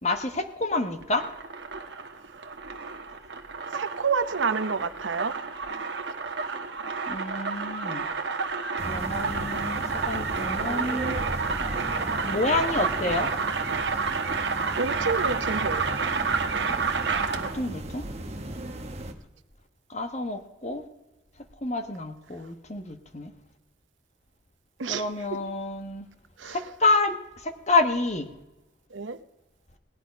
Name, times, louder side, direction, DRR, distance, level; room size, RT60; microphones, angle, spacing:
voice 1, 0.0-1.2 7.1-8.1 8.8-11.2 12.2-13.3 17.3-18.0 19.9-20.8 21.6-23.3 24.9-26.1 26.5-27.1 27.4-28.3, left 3 dB, 35° left, 7 dB, 1.1 m, -28 dB
sound 1, 1.0-17.7, right 5 dB, 65° right, 1.2 m, -30 dB
voice 2, 3.7-5.3 14.8-16.0 24.8-25.0 26.4-26.6 28.9-29.2, right 5 dB, 80° right, 11 dB, 0.8 m, -28 dB
sound 2, 8.8-19.1, right 1 dB, 35° right, 1.1 m, -36 dB
17.5 x 11.0 x 5.2 m, 0.99 s
head